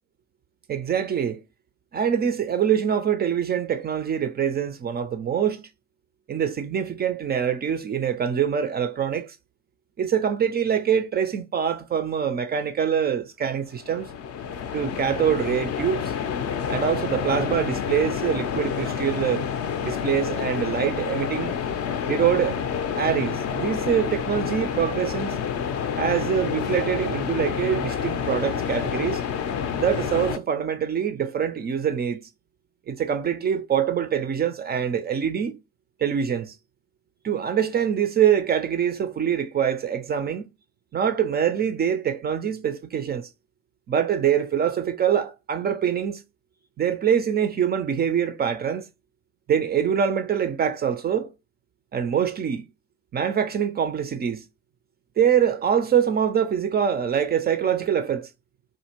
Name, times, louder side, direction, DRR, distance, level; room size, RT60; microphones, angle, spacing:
voice 1, 0.7-1.4 1.9-5.7 6.3-9.4 10.0-14.1 14.7-16.1 16.7-19.5 19.8-21.5 22.0-22.6 23.0-25.4 26.0-29.2 29.8-32.3 32.9-35.6 36.0-36.5 37.2-40.5 40.9-43.3 43.9-46.2 46.8-48.9 49.5-51.3 51.9-52.7 53.1-54.4 55.2-58.3, right 8 dB, 25° right, 0.4 m, -24 dB
sound 1, 13.7-30.4, left 7 dB, 40° left, 0.5 m, -28 dB
3.4 x 2.5 x 2.8 m
hypercardioid pair, 50°, 38 cm